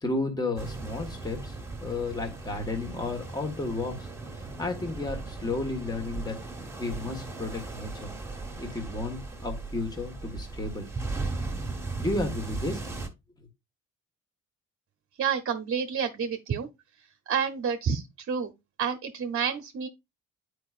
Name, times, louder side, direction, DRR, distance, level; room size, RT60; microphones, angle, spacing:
voice 1, 0.0-1.5 1.8-4.1 4.3-6.4 6.8-8.1 8.6-10.9 12.0-13.0, left 2 dB, 15° left, 1.5 m, -32 dB
sound 1, 0.6-13.1, right 3 dB, 10° right, 1.7 m, -37 dB
voice 2, 15.2-16.7 17.3-18.5 18.8-19.9, right 7 dB, 45° right, 0.8 m, -29 dB
9.5 x 4.8 x 2.4 m
cardioid pair, 90°, 30 cm